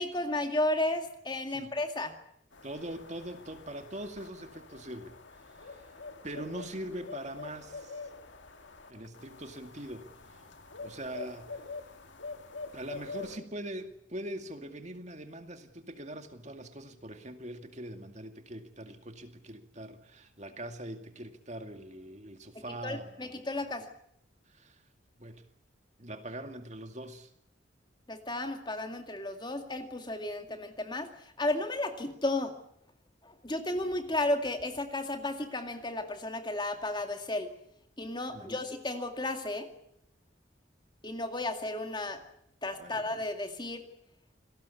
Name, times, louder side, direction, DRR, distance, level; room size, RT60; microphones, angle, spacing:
voice 1, 0.0-2.1 22.5-23.9 28.1-32.5 33.2-37.5 38.0-39.7 41.0-42.2 42.6-43.9, left 2 dB, 25° left, 6 dB, 2.2 m, -33 dB
sound 1, 2.5-13.4, left 3 dB, 75° left, 2.2 m, -46 dB
voice 2, 2.6-5.9 6.2-8.1 8.9-10.5 10.8-11.6 12.7-23.2 24.5-24.8 25.2-25.4 26.0-27.3 38.3-38.6 42.8-43.0, right 1 dB, 35° right, 7 dB, 2.3 m, -42 dB
28.0 x 19.0 x 8.5 m, 0.75 s
head